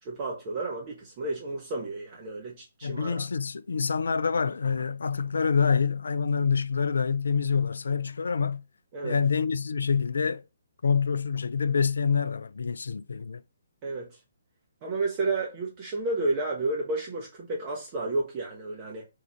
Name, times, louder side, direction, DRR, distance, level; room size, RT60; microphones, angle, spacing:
voice 1, 0.0-3.3 8.9-9.2 13.8-14.2 14.8-19.1, right 2 dB, 30° right, 0.8 m, -31 dB
voice 2, 2.8-8.6 9.0-10.4 10.8-13.4, left 5 dB, 60° left, 0.3 m, -26 dB
3.7 x 2.4 x 4.4 m
figure-of-eight pair, 135°, 0 cm